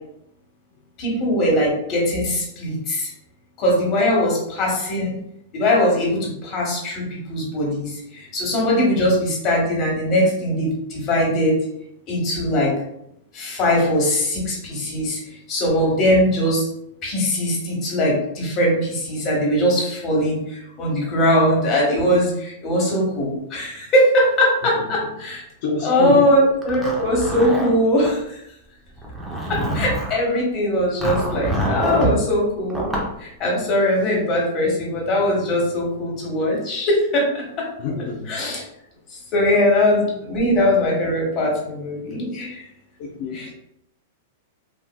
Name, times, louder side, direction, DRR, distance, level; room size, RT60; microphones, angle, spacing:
voice 1, 1.0-3.1 3.6-5.2 5.5-11.6 12.1-12.7 13.3-15.2 15.5-16.7 17.0-25.4 25.8-28.4 29.5-37.4 38.2-38.6 39.3-42.6 43.3-43.5, left 1 dB, 35° left, -2 dB, 1.4 m, -20 dB
voice 2, 25.6-26.3 37.8-38.3 43.0-43.5, left 3 dB, 55° left, -2 dB, 0.5 m, -27 dB
Zipper (clothing), 26.6-28.1 29.0-30.2 31.0-32.1 32.7-33.1, right 1 dB, 10° right, 0.7 m, -26 dB
3.6 x 2.5 x 2.2 m, 0.78 s
hypercardioid pair, 125°, 0 cm